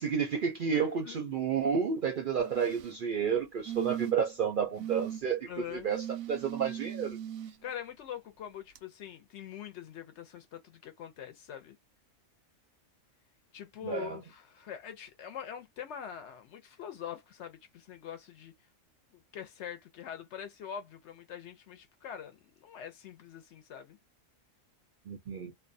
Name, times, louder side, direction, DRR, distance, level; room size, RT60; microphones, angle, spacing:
voice 1, 0.0-7.2 13.8-14.2 25.1-25.5, right 7 dB, 60° right, 0.5 m, -31 dB
voice 2, 0.7-1.3 5.5-5.9 7.6-11.8 13.5-18.5 19.1-24.0, left 9 dB, 65° left, 0.8 m, -44 dB
sound 1, 2.4-3.0 3.7-4.3 4.8-5.2 5.9-7.5 8.8-8.9, right 11 dB, 85° right, 1.0 m, -38 dB
2.5 x 2.1 x 2.6 m
omnidirectional pair, 1.4 m